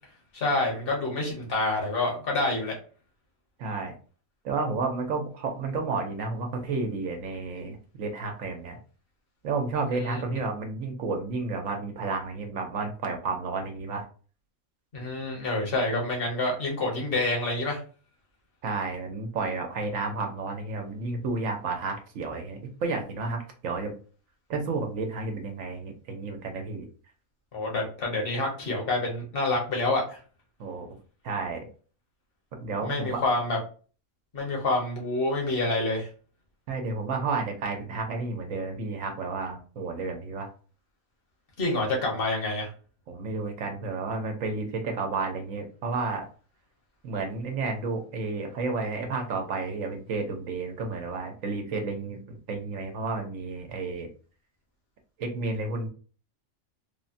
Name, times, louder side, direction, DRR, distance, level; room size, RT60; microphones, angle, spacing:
voice 1, 0.3-2.7 9.9-10.4 14.9-17.8 27.5-30.2 32.8-33.6 34.3-36.1 41.6-42.7, left 2 dB, 45° left, -1 dB, 1.2 m, -27 dB
voice 2, 3.6-3.9 4.4-8.8 9.4-14.0 18.6-23.9 24.5-26.9 30.6-30.9 31.2-31.7 32.6-33.2 36.7-40.5 43.1-46.3 47.0-54.1 55.2-55.9, right 3 dB, 80° right, 3 dB, 1.1 m, -31 dB
3.3 x 2.1 x 2.6 m, 0.38 s
omnidirectional pair, 1.4 m